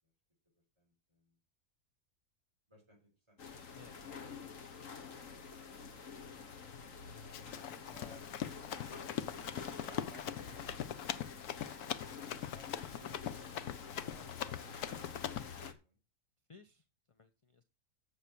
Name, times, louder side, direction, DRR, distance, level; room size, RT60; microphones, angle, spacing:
voice 1, 0.8-1.4 2.7-4.1 7.9-8.7 9.9-11.4 12.5-13.4 14.1-15.0 15.6-16.0, equal, 15° right, -1 dB, 6.0 m, -62 dB
sound 1, 3.4-15.7, left 5 dB, 60° left, 1.7 m, -48 dB
voice 2, 3.7-4.1 16.5-17.6, left 4 dB, 30° left, 9 dB, 0.7 m, -60 dB
Run, 7.3-15.7, left 10 dB, 80° left, 1.3 m, -42 dB
10.5 x 7.2 x 6.2 m, 0.31 s
omnidirectional pair, 1.6 m